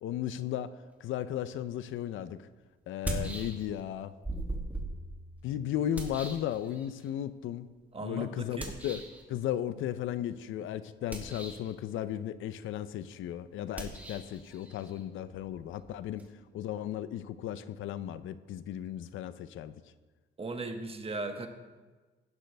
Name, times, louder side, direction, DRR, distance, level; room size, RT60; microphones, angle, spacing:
voice 1, 0.0-2.5 2.9-4.1 5.4-7.7 8.0-9.0 9.3-16.2 16.5-19.7, left 11 dB, 80° left, 13 dB, 0.6 m, -35 dB
sound 1, 1.9-2.0 2.9-3.9 4.2-7.1 8.6-9.2 11.0-11.7 13.7-16.3, right 1 dB, 10° right, 2.6 m, -40 dB
voice 2, 7.9-8.3 8.6-8.7 20.4-21.5, right 2 dB, 30° right, 5 dB, 1.4 m, -37 dB
16.0 x 12.0 x 3.5 m, 1.3 s
cardioid pair, 90°, 20 cm